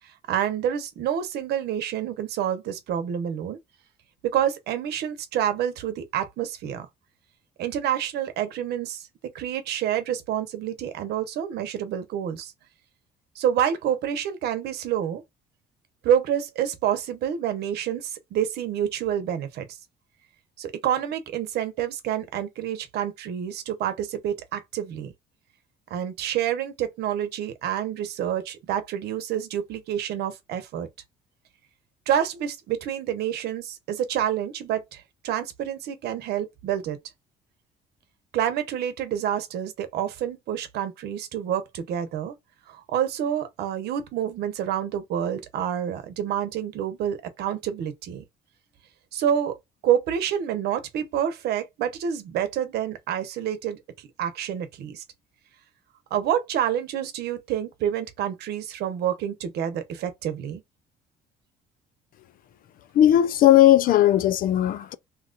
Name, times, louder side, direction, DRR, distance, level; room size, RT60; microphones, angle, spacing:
voice 1, 0.3-3.6 4.2-6.9 7.6-9.0 9.3-12.5 13.4-15.2 16.0-19.7 20.6-25.1 25.9-30.9 32.1-37.0 38.3-42.3 42.7-48.2 49.1-49.6 49.8-55.0 56.1-60.6, right 9 dB, 75° right, 0.9 m, -28 dB
voice 2, 63.0-64.9, left 12 dB, 55° left, 0.4 m, -17 dB
2.9 x 2.4 x 3.8 m
cardioid pair, 110°, 17 cm